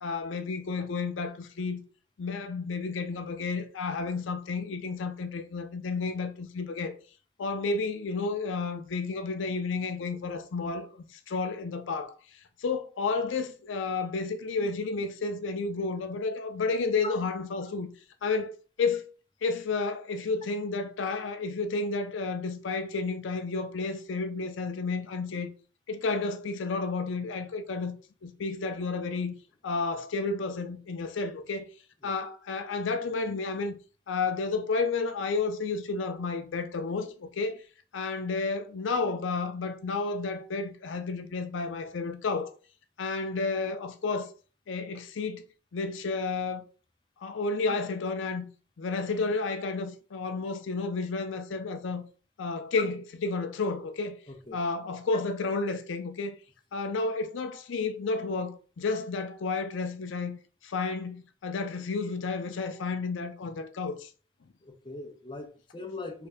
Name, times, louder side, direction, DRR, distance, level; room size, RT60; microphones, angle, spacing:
voice 1, 0.0-1.8 2.2-6.9 7.4-10.9 11.1-12.1 12.6-17.9 18.2-19.1 19.4-25.5 25.9-29.3 29.6-31.7 32.0-33.8 34.1-37.6 37.9-42.5 43.0-44.3 44.7-45.4 45.7-46.6 47.2-48.5 48.8-52.0 52.4-54.2 54.5-56.3 56.7-64.1, left 4 dB, 85° left, 0.5 m, -31 dB
voice 2, 54.3-54.6 64.6-66.3, left 3 dB, 25° left, 0.6 m, -40 dB
3.4 x 2.6 x 3.4 m
head